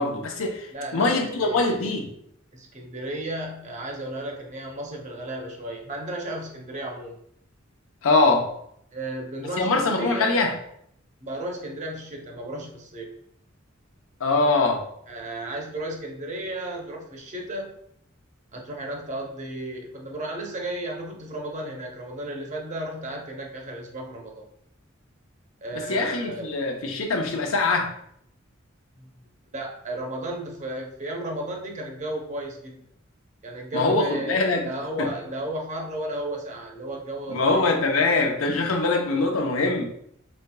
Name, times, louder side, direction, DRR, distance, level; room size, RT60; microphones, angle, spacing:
voice 1, 0.0-2.1 8.0-8.5 9.6-10.5 14.2-14.8 25.7-27.9 33.7-34.7 35.0-35.1 37.3-39.9, left 3 dB, 80° left, 2 dB, 0.7 m, -23 dB
voice 2, 0.7-2.0 2.5-7.2 8.9-10.6 11.2-13.1 15.1-17.7 18.5-24.5 25.6-26.5 29.0-29.1 29.5-32.8 33.4-37.7, right 1 dB, 35° right, 0 dB, 0.7 m, -34 dB
4.3 x 3.6 x 2.2 m, 0.70 s
head